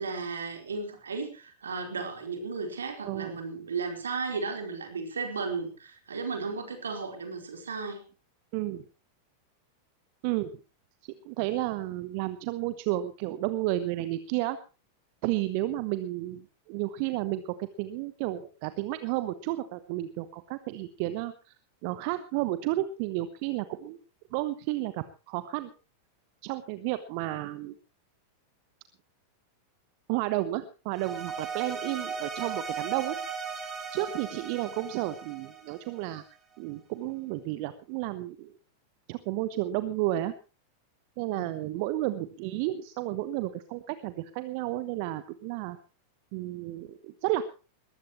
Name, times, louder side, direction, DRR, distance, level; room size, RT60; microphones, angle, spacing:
voice 1, 0.0-8.0 41.3-41.5, right 4 dB, 70° right, 4 dB, 4.4 m, -35 dB
voice 2, 3.0-3.4 8.5-8.8 10.2-10.5 11.0-14.6 15.2-21.5 21.8-24.0 24.3-25.7 26.4-27.7 30.1-33.2 33.9-36.2 36.6-38.5 39.1-40.3 41.2-45.8 46.3-47.4, right 15 dB, 45° right, 13 dB, 1.1 m, -32 dB
sound 1, 30.9-36.3, right 5 dB, 25° right, 5.6 m, -37 dB
20.5 x 14.5 x 3.1 m, 0.33 s
figure-of-eight pair, 90°, 0 cm